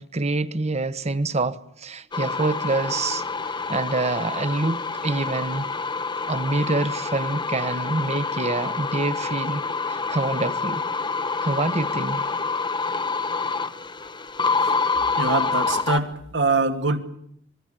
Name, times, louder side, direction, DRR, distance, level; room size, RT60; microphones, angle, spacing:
voice 1, 0.0-3.2 3.5-5.7 6.3-10.8 11.4-12.3, right 2 dB, 35° right, 1.2 m, -26 dB
sound 1, 2.1-16.0, left 4 dB, 25° left, 1.3 m, -27 dB
voice 2, 15.2-17.0, right 3 dB, 70° right, 2.5 m, -24 dB
25.5 x 21.0 x 9.1 m
head